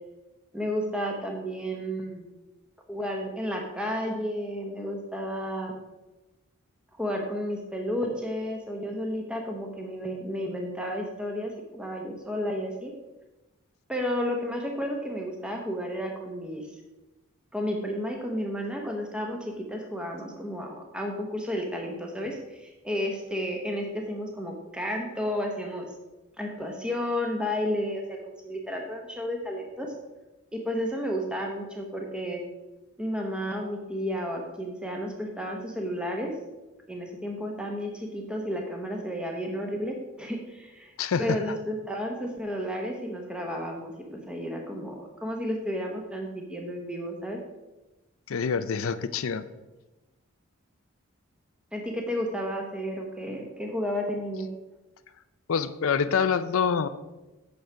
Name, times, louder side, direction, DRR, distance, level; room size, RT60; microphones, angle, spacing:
voice 1, 0.5-2.3 2.9-5.7 7.0-12.9 13.9-16.7 17.5-25.9 26.4-29.9 30.5-32.4 33.0-36.3 36.9-40.9 41.2-47.4 51.7-54.5, equal, 5° right, 1 dB, 0.9 m, -32 dB
voice 2, 41.0-41.4 48.3-49.4 55.5-56.9, left 6 dB, 75° left, 12 dB, 0.5 m, -26 dB
8.6 x 6.3 x 4.6 m, 1.1 s
head